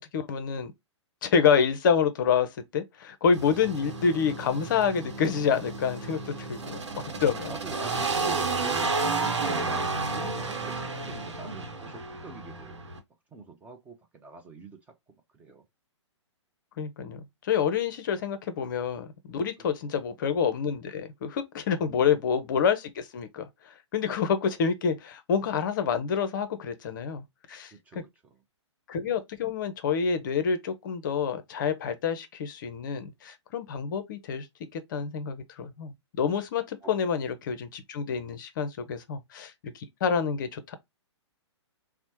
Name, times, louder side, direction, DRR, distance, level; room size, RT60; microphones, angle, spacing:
voice 1, 0.1-0.7 1.2-6.8 7.2-7.5 16.8-28.0 28.9-34.5 34.7-40.7, left 6 dB, 40° left, 0.6 m, -28 dB
sound 1, 3.3-13.0, right 3 dB, 70° right, 0.9 m, -32 dB
voice 2, 7.4-12.8 13.3-14.8 15.3-15.6 19.8-19.9 21.8-22.1 27.7-28.4 36.8-36.9, right 4 dB, 10° right, 0.4 m, -44 dB
4.1 x 2.0 x 2.9 m
figure-of-eight pair, 120°, 15 cm